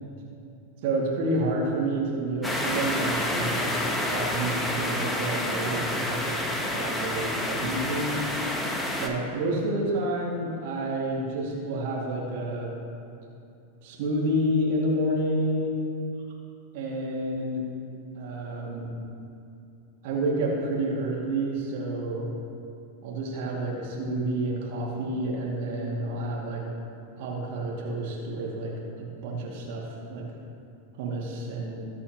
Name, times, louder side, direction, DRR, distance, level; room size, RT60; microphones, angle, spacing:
voice 1, 0.8-3.7 4.0-6.4 6.7-8.1 9.0-12.7 13.8-15.7 16.7-17.6 18.2-18.9 20.0-22.3 23.0-26.6 27.2-28.7 29.0-30.3 31.0-31.9, right 1 dB, 50° right, -3 dB, 2.4 m, -29 dB
sound 1, 2.4-9.1, left 1 dB, 10° left, 1.3 m, -29 dB
21.5 x 8.3 x 3.1 m, 2.6 s
figure-of-eight pair, 90°, 0 cm